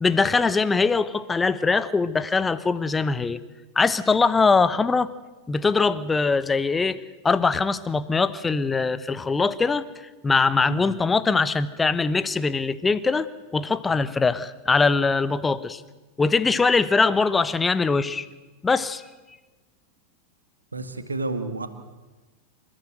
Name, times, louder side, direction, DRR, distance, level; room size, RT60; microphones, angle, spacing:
voice 1, 0.0-3.4 3.8-5.1 5.5-7.0 7.2-9.8 10.2-13.3 13.5-15.8 16.2-18.3 18.6-19.0, left 4 dB, 15° left, 16 dB, 0.9 m, -22 dB
voice 2, 20.7-21.7, right 3 dB, 80° right, 10 dB, 1.9 m, -30 dB
27.5 x 14.0 x 7.9 m, 1.2 s
figure-of-eight pair, 90°, 0 cm